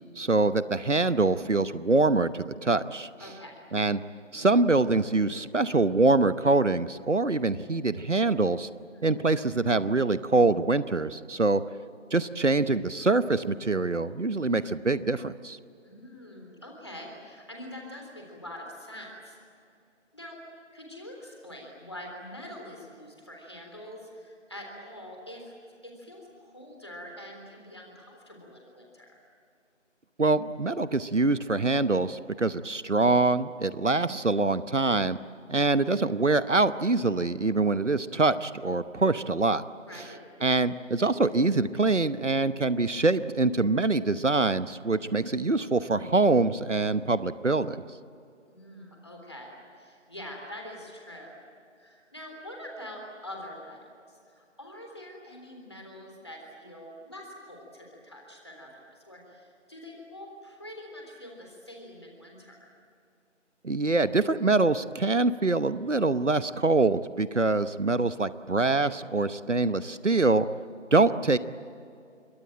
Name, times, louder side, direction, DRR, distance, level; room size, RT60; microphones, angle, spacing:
voice 1, 0.2-3.1 3.7-4.0 4.3-8.7 9.0-11.6 12.1-15.6 30.2-35.2 35.5-39.6 40.4-47.8 63.6-70.4 70.9-71.4, right 3 dB, 70° right, 14 dB, 1.0 m, -24 dB
voice 2, 3.2-3.6 8.9-9.0 15.8-19.4 20.1-20.4 20.7-25.5 25.8-29.2 39.9-40.3 48.5-51.4 51.8-62.7, left 1 dB, 20° left, 0 dB, 3.5 m, -45 dB
27.5 x 23.0 x 8.9 m, 2.5 s
figure-of-eight pair, 175°, 37 cm